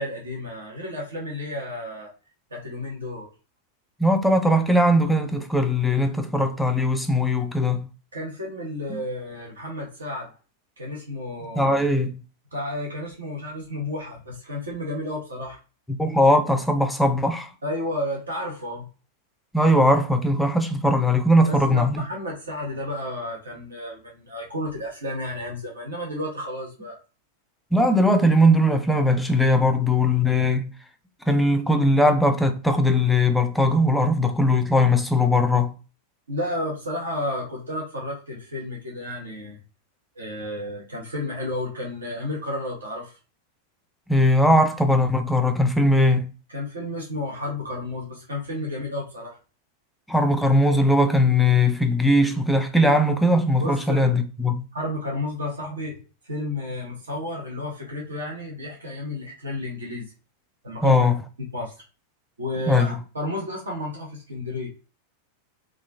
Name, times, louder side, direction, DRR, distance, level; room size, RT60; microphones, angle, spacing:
voice 1, 0.0-2.1 2.5-3.3 8.1-10.3 10.8-11.8 12.5-15.6 17.6-18.9 21.4-27.0 36.3-39.6 40.2-43.1 46.5-49.4 53.6-54.2 54.7-56.0 56.3-60.1 60.6-61.1 61.5-61.7 62.4-64.7, left 1 dB, 70° right, 1.0 m, -32 dB
voice 2, 4.0-7.9 8.9-9.0 11.6-12.2 16.0-17.5 19.5-22.0 27.7-30.7 31.3-35.7 44.1-46.3 50.1-54.6 60.8-61.2 62.7-62.9, left 1 dB, 5° left, 0.4 m, -20 dB
3.0 x 2.4 x 2.3 m
figure-of-eight pair, 90°, 0 cm